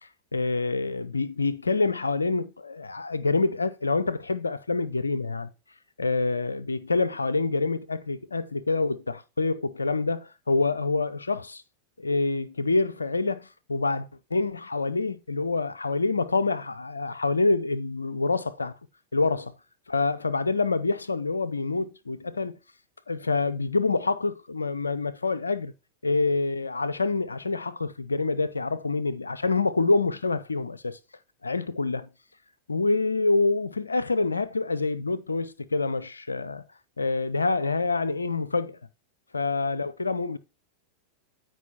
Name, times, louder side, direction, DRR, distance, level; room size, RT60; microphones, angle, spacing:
voice 1, 0.3-5.5 6.0-11.6 12.0-18.7 19.1-19.5 19.9-22.5 23.1-25.7 26.0-31.0 31.4-32.1 32.7-36.6 37.0-38.8 39.3-40.4, left 3 dB, 80° left, 0.5 m, -26 dB
13.5 x 4.6 x 2.9 m
figure-of-eight pair, 90°, 0 cm